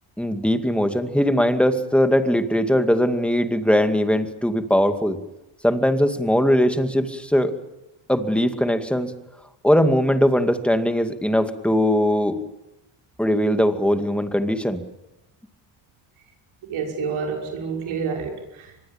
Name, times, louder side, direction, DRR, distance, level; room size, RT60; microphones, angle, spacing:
voice 1, 0.2-5.2 5.6-7.5 8.1-9.1 9.6-12.4 13.2-14.8, equal, ahead, 8 dB, 2.2 m, -20 dB
voice 2, 16.7-18.9, right 5 dB, 90° right, 1 dB, 6.0 m, -29 dB
25.0 x 21.5 x 8.8 m, 0.91 s
cardioid pair, 120°, 47 cm